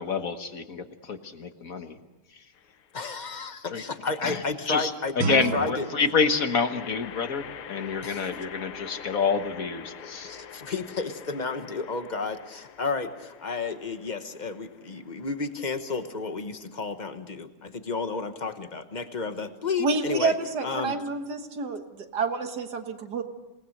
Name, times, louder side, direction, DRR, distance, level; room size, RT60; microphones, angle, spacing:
voice 1, 0.0-2.0 2.3-2.4 3.7-3.8 4.2-10.3, left 5 dB, 45° left, 8 dB, 1.5 m, -28 dB
sound 1, 2.5-3.1 5.7-17.0, left 8 dB, 90° left, 2.0 m, -45 dB
voice 2, 2.9-5.8 8.0-8.3 10.2-20.3 20.6-21.0, left 4 dB, 30° left, 8 dB, 0.9 m, -32 dB
Guitar, 5.2-7.9, right 4 dB, 80° right, 2.4 m, -34 dB
voice 3, 19.8-23.2, right 4 dB, 55° right, 7 dB, 1.9 m, -29 dB
28.0 x 19.0 x 6.6 m, 1.1 s
omnidirectional pair, 2.3 m